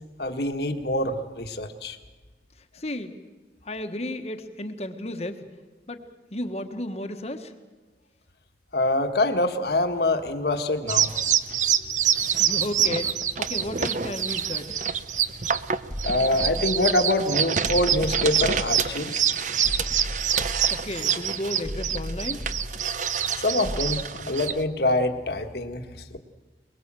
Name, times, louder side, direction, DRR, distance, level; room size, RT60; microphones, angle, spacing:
voice 1, 0.2-2.0 8.7-11.1 16.0-19.3 23.3-26.2, left 2 dB, 65° left, 6 dB, 1.6 m, -25 dB
voice 2, 2.7-3.2 3.6-5.4 5.9-6.0 6.3-7.5 12.3-14.8 20.7-22.5, left 1 dB, 35° left, 6 dB, 1.3 m, -33 dB
sound 1, 10.9-24.6, right 8 dB, 45° right, 0.7 m, -26 dB
sound 2, 15.9-17.2 17.6-19.2 19.6-21.2 21.6-23.2 23.6-23.9, equal, 10° left, 1.2 m, -36 dB
22.5 x 22.0 x 7.6 m, 1.2 s
head